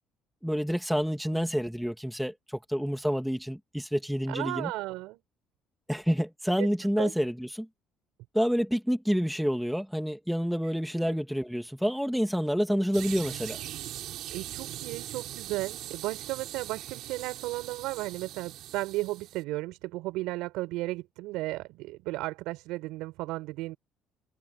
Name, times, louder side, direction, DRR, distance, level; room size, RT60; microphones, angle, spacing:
voice 1, 0.4-2.3 2.7-4.7 5.9-7.7 8.3-13.6, equal, ahead, 2.5 m, -28 dB
voice 2, 4.3-5.2 6.6-7.1 14.3-23.8, right 19 dB, 90° right, 6.6 m, -35 dB
sound 1, 12.9-19.4, right 13 dB, 60° right, 6.9 m, -41 dB
cardioid pair, 160°, 0 cm